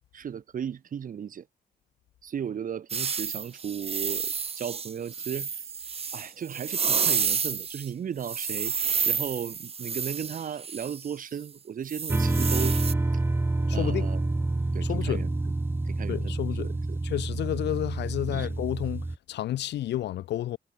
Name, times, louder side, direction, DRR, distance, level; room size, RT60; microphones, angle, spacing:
voice 1, 0.1-1.5 2.2-5.6 6.1-12.8 13.7-14.2 14.7-15.3 15.9-17.0 18.3-18.5, right 8 dB, 50° right, 3.7 m, -36 dB
sound 1, 2.9-7.9 8.2-11.1 11.9-12.9, right 6 dB, 35° right, 2.3 m, -30 dB
sound 2, 12.1-19.2, right 2 dB, 15° right, 2.2 m, -28 dB
voice 2, 13.7-14.1 14.8-15.2 16.1-16.7 17.0-20.6, left 13 dB, 85° left, 0.8 m, -31 dB
wide cardioid pair, 150°, 17 cm